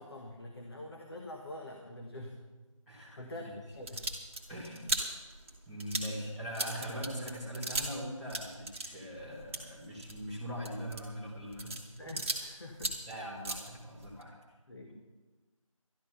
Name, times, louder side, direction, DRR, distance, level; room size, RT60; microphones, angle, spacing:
voice 1, 0.0-2.4 2.9-4.1 4.7-4.9 6.1-6.3 12.0-13.0 14.7-14.9, left 1 dB, 45° left, 2 dB, 1.5 m, -46 dB
voice 2, 2.9-3.2 3.4-3.5 4.5-5.0 5.7-11.7 13.1-14.3 14.9-15.0, equal, ahead, -11 dB, 0.9 m, -41 dB
sound 1, 3.7-8.0 8.3-12.5 12.7-14.2, right 2 dB, 25° right, 1.4 m, -38 dB
12.5 x 12.0 x 5.7 m, 1.2 s
figure-of-eight pair, 165°, 18 cm